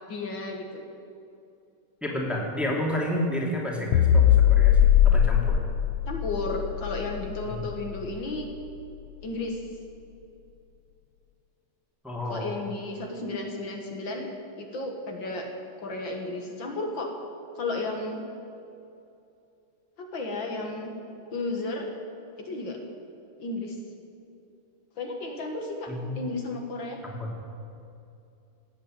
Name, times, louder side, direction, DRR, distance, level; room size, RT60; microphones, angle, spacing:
voice 1, 0.1-0.8 6.1-8.5 9.2-9.6 12.3-14.3 14.6-15.5 15.8-17.1 17.6-18.2 20.0-20.9 21.3-21.9 22.4-22.8 23.4-23.8 25.0-27.0, left 2 dB, 65° left, 2 dB, 2.2 m, -33 dB
voice 2, 2.0-5.6 7.5-7.6 12.0-12.5 25.9-26.2 27.0-27.3, left 1 dB, ahead, -3 dB, 2.5 m, -30 dB
sound 1, 3.9-8.4, left 10 dB, 85° left, 1.6 m, -21 dB
17.5 x 8.7 x 9.1 m, 2.6 s
omnidirectional pair, 2.3 m